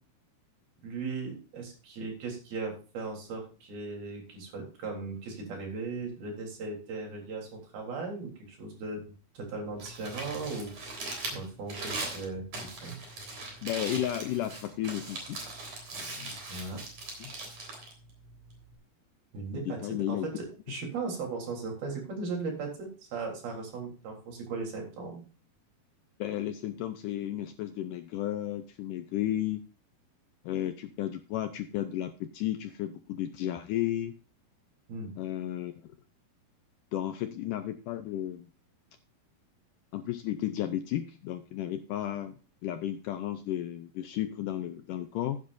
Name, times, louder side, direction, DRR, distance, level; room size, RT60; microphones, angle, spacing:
voice 1, 0.8-13.0 16.5-16.8 19.3-19.8 20.1-25.2 34.9-35.1, right 4 dB, 70° right, 0 dB, 5.4 m, -38 dB
Crumpling crinkling, 9.6-18.8, right 2 dB, 45° right, 4.7 m, -40 dB
voice 2, 13.6-15.4 15.9-16.4 17.2-17.3 19.5-20.3 26.2-29.6 30.4-34.1 35.2-35.9 36.9-38.5 39.9-42.3 42.6-45.4, left 12 dB, 80° left, 9 dB, 1.9 m, -33 dB
15.0 x 9.7 x 2.6 m, 0.35 s
omnidirectional pair, 4.5 m